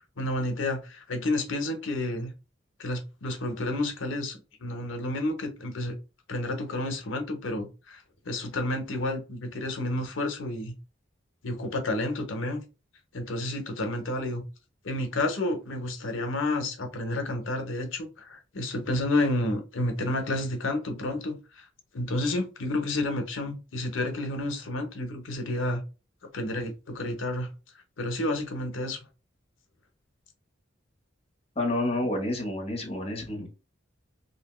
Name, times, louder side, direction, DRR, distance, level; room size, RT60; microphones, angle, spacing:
voice 1, 0.2-2.3 2.8-5.9 6.3-10.7 11.4-12.6 13.1-14.4 14.8-21.7 21.9-25.8 26.3-27.5 28.0-29.0, left 1 dB, 80° left, 0.8 m, -30 dB
voice 2, 31.6-33.5, left 1 dB, 30° left, 0.9 m, -29 dB
2.8 x 2.1 x 3.0 m
head